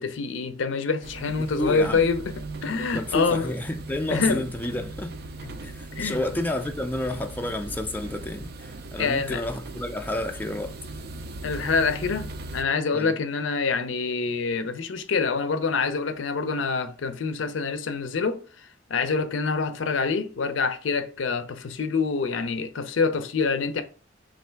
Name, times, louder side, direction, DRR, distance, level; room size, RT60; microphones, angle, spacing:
voice 1, 0.0-2.2 2.6-3.5 4.1-4.4 5.4-5.5 5.9-6.2 9.0-9.4 11.4-18.4 18.9-23.8, left 4 dB, 85° left, 0.5 m, -26 dB
sound 1, 1.0-12.6, right 2 dB, 55° right, 0.4 m, -39 dB
voice 2, 1.4-2.1 2.9-5.2 5.6-10.7 12.9-13.2, left 1 dB, 10° left, 0.3 m, -30 dB
3.3 x 2.5 x 4.4 m
head